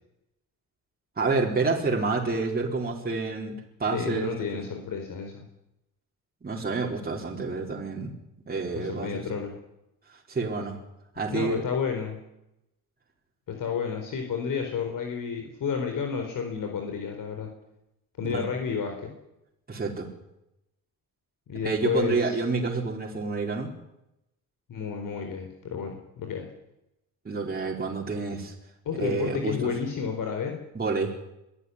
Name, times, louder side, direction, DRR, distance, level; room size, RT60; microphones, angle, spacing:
voice 1, 1.2-3.5 3.8-4.6 6.4-8.1 8.5-9.2 10.3-10.8 11.2-11.6 18.2-18.5 19.7-20.1 21.6-23.7 27.2-28.5 29.0-29.6 30.7-31.1, right 4 dB, 25° right, -1 dB, 4.3 m, -28 dB
voice 2, 3.9-5.4 8.7-9.6 11.3-12.2 13.5-17.5 18.2-19.1 21.5-22.3 24.7-26.5 28.8-30.6, left 6 dB, 65° left, 4 dB, 4.4 m, -31 dB
23.0 x 14.0 x 9.8 m, 0.85 s
cardioid pair, 115°, 35 cm